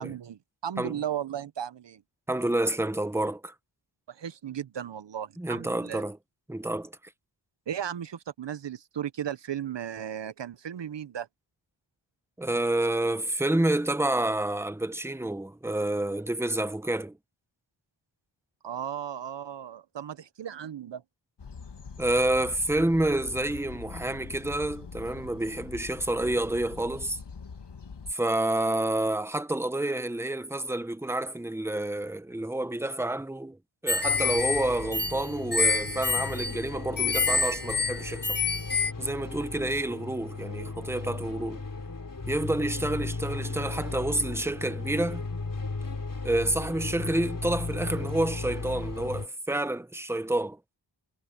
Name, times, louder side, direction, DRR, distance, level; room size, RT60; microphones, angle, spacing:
voice 1, 0.0-2.0 4.1-6.0 7.7-11.3 18.6-21.0, right 9 dB, 65° right, 0.8 m, -35 dB
voice 2, 2.3-3.5 5.4-6.2 6.5-6.9 12.4-17.2 22.0-27.2 28.1-33.6 33.8-38.4 39.0-41.6 42.3-45.2 46.2-50.8, right 1 dB, 5° right, 1.1 m, -29 dB
sound 1, 21.4-28.1, left 5 dB, 60° left, 2.0 m, -43 dB
sound 2, 33.9-38.9, left 4 dB, 20° left, 1.7 m, -27 dB
sound 3, 34.0-49.3, left 3 dB, 45° left, 3.7 m, -36 dB
wide cardioid pair, 80°, 46 cm